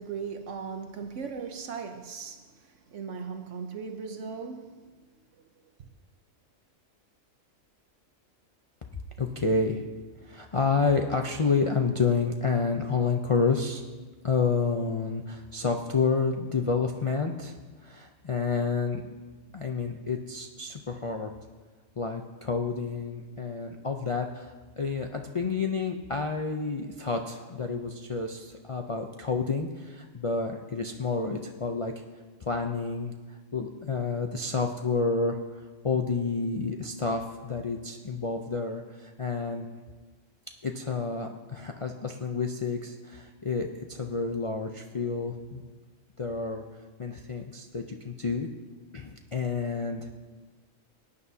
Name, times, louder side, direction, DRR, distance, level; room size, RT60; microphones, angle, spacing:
voice 1, 0.0-2.5 2.9-4.7, right 5 dB, 65° right, 1.1 m, -37 dB
voice 2, 9.2-9.8 10.2-13.8 14.2-17.6 17.8-19.0 19.5-21.3 22.0-31.9 32.4-33.1 33.5-39.7 40.6-45.6 46.2-46.6 47.0-48.5 48.9-50.2, left 4 dB, 50° left, 0.3 m, -29 dB
18.5 x 9.7 x 2.8 m
omnidirectional pair, 1.4 m